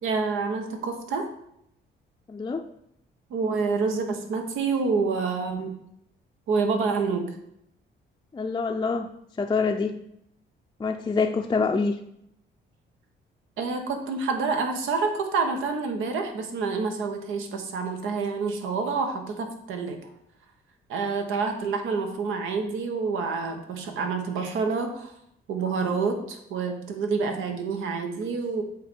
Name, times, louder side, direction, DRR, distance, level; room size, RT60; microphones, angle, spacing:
voice 1, 0.0-1.3 3.3-5.7 6.5-7.4 13.6-20.1 20.9-25.1 25.5-28.6, right 4 dB, 85° right, 4 dB, 1.1 m, -28 dB
voice 2, 2.3-2.6 8.3-9.1 9.4-10.0 10.8-11.9, left 4 dB, 20° left, 3 dB, 0.5 m, -26 dB
7.8 x 3.2 x 5.3 m, 0.75 s
cardioid pair, 90°, 20 cm